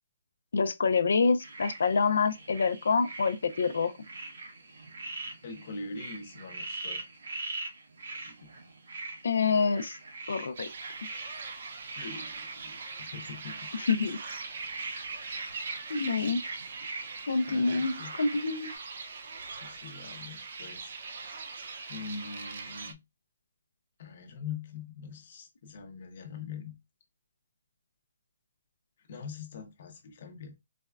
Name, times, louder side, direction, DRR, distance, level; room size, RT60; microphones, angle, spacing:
voice 1, 0.5-3.9 9.2-10.0 10.3-10.7 13.7-14.2 15.9-16.4 17.3-18.7, left 4 dB, 70° left, 0.4 m, -27 dB
sound 1, 1.4-18.8, right 3 dB, 75° right, 1.1 m, -43 dB
voice 2, 5.4-7.0 8.3-8.5 12.0-13.7 17.5-18.1 19.6-20.9 21.9-23.0 24.0-26.8 29.0-30.6, left 5 dB, 40° left, 0.7 m, -43 dB
sound 2, 10.5-22.9, right 4 dB, 50° right, 0.4 m, -41 dB
4.1 x 2.2 x 2.3 m
hypercardioid pair, 170°, 0 cm